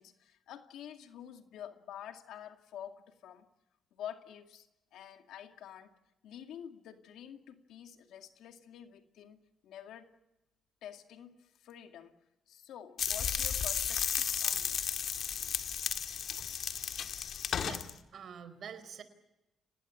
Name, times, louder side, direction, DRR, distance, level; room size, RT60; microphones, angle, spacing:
voice 1, 0.0-3.5 3.9-5.9 6.2-10.1 10.8-12.2 12.5-15.1, left 10 dB, 80° left, 6 dB, 2.3 m, -48 dB
sound 1, 13.0-17.9, left 8 dB, 60° left, 1.9 m, -34 dB
voice 2, 17.6-19.0, right 7 dB, 60° right, 13 dB, 4.3 m, -47 dB
27.5 x 19.0 x 8.5 m, 0.95 s
cardioid pair, 90°, 0 cm